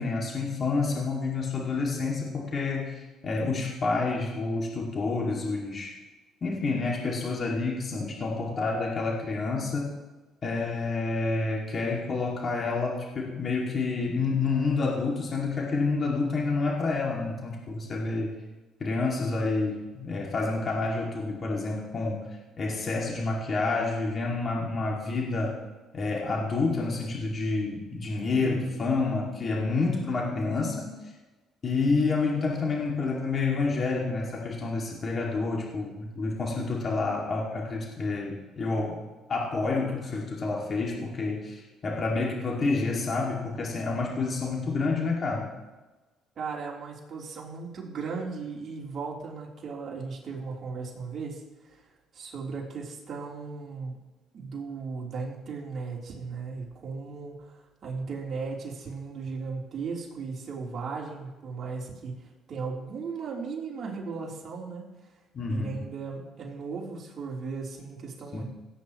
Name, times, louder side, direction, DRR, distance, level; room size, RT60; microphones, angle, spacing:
voice 1, 0.0-5.9 6.4-10.0 10.4-18.4 18.8-22.3 22.6-25.6 25.9-30.9 31.6-39.0 39.3-45.5 65.3-65.8 68.3-68.4, left 3 dB, 40° left, -2 dB, 2.4 m, -29 dB
voice 2, 28.3-28.8 46.4-51.8 52.1-54.0 54.3-64.8 65.5-68.4, right 4 dB, 50° right, -3 dB, 3.6 m, -36 dB
17.5 x 9.1 x 3.1 m, 1.2 s
supercardioid pair, 80°, 0 cm